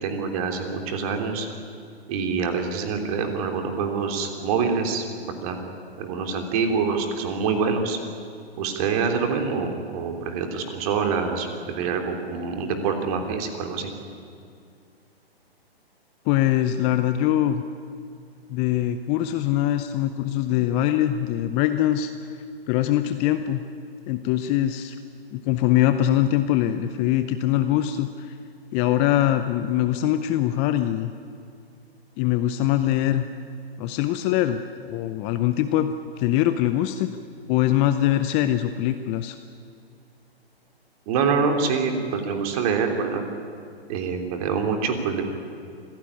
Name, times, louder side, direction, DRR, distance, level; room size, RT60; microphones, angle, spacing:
voice 1, 0.0-1.5 2.1-5.6 6.0-8.0 8.6-13.9 41.1-43.3 43.9-45.2, right 5 dB, 35° right, 5 dB, 3.5 m, -26 dB
voice 2, 16.3-17.6 18.5-22.1 22.7-23.7 24.1-25.0 25.3-28.3 28.7-31.1 32.2-33.3 33.8-37.1 37.5-39.4, left 12 dB, 20° left, 10 dB, 0.6 m, -23 dB
26.5 x 16.5 x 9.8 m, 2.4 s
hypercardioid pair, 130°, 31 cm